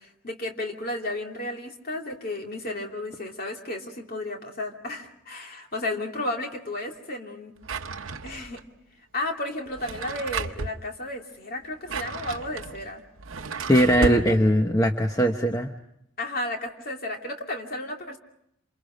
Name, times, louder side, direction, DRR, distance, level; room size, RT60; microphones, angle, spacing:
voice 1, 0.0-7.5 8.2-8.6 9.1-13.0 14.0-14.1 16.2-18.2, left 1 dB, 45° left, 2 dB, 2.7 m, -33 dB
Drawer open or close, 7.6-8.6 9.7-10.8 11.6-14.3, right 4 dB, 80° right, 0.9 m, -33 dB
voice 2, 13.7-15.7, equal, 15° left, 4 dB, 1.0 m, -20 dB
28.0 x 27.5 x 5.1 m, 0.75 s
head